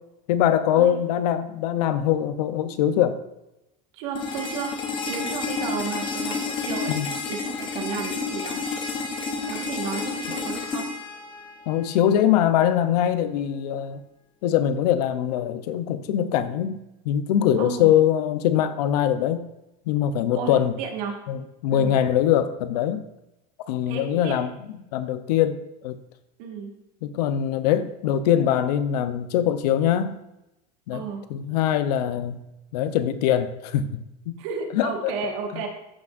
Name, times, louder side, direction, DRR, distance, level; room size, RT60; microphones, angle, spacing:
voice 1, 0.3-3.2 6.9-7.1 11.7-14.0 14.4-19.4 19.9-20.7 21.3-23.0 23.7-24.5 24.9-26.0 27.0-30.2 30.9-32.4 32.7-34.4 34.7-35.1 35.5-35.6, left 10 dB, 85° left, 12 dB, 0.7 m, -23 dB
voice 2, 3.9-4.8 5.1-8.6 9.5-10.9 17.6-17.9 20.3-21.2 21.7-22.0 23.9-24.4 26.4-26.7 30.9-31.2 34.4-35.7, right 6 dB, 60° right, 2 dB, 1.6 m, -33 dB
sound 1, 4.2-12.1, left 4 dB, 25° left, 0.9 m, -30 dB
13.5 x 6.0 x 2.6 m, 0.91 s
cardioid pair, 165°, 20 cm